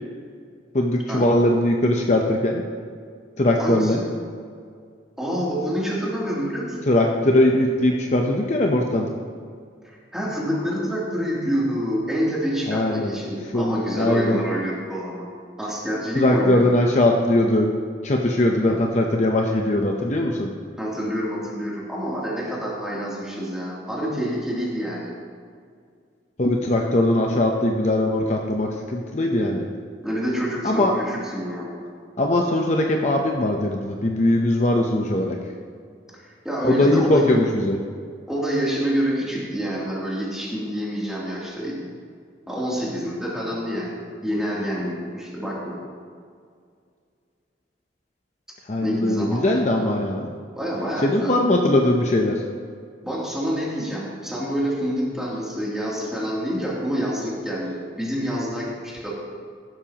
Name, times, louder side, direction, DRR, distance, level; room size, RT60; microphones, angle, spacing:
voice 1, 0.7-2.6 3.4-4.0 6.9-9.1 12.7-13.2 13.5-14.4 16.2-17.7 18.0-20.5 26.4-29.7 30.6-30.9 32.2-35.4 36.6-37.8 48.7-50.3 51.0-52.4, left 1 dB, 40° left, 1 dB, 0.7 m, -20 dB
voice 2, 3.6-4.2 5.2-6.8 9.8-15.3 15.6-16.8 20.8-25.1 30.0-31.8 36.2-37.4 38.3-41.9 42.5-45.8 48.8-50.0 50.5-51.5 53.0-59.1, equal, 5° right, -7 dB, 2.9 m, -27 dB
15.0 x 12.5 x 3.0 m, 2.1 s
head